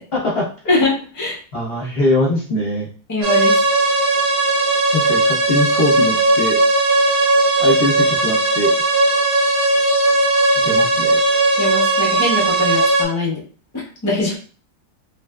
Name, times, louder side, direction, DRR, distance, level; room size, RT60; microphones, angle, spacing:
voice 1, 0.1-0.5 0.7-0.9 1.5-2.9 4.9-6.6 7.6-8.7 10.6-11.2, left 2 dB, 45° left, -4 dB, 0.9 m, -21 dB
voice 2, 0.7-1.4 3.1-3.6 11.5-13.4 14.0-14.4, left 2 dB, 25° left, -4 dB, 0.4 m, -21 dB
sound 1, 3.2-13.0, right 2 dB, 80° right, 0.5 m, -17 dB
3.6 x 2.4 x 2.2 m, 0.40 s
omnidirectional pair, 1.8 m